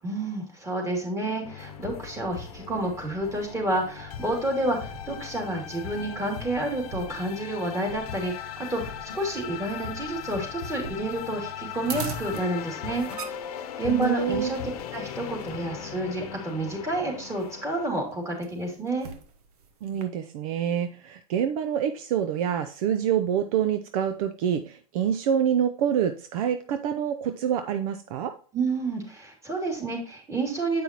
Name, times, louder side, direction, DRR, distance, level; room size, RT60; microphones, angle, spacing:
voice 1, 0.0-13.1 13.8-19.1 28.5-30.8, right 2 dB, 15° right, 0 dB, 2.7 m, -29 dB
sound 1, 1.4-17.9, left 9 dB, 80° left, 0.9 m, -38 dB
sound 2, 1.6-20.0, right 6 dB, 85° right, 1.2 m, -45 dB
voice 2, 13.9-14.5 19.8-28.3, right 9 dB, 65° right, 8 dB, 0.7 m, -26 dB
8.6 x 5.4 x 3.0 m, 0.41 s
supercardioid pair, 120°, 19 cm